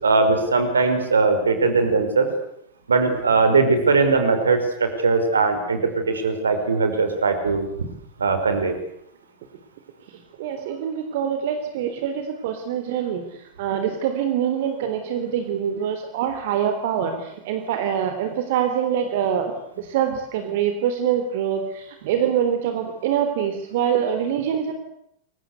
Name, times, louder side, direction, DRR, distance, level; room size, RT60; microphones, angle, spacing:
voice 1, 0.0-2.3 2.9-7.7 8.2-8.8, right 4 dB, 70° right, 8 dB, 5.3 m, -20 dB
voice 2, 10.4-13.2 13.6-19.5 19.8-24.7, right 8 dB, 50° right, 7 dB, 3.7 m, -24 dB
29.5 x 23.5 x 8.3 m, 0.75 s
figure-of-eight pair, 90°, 0 cm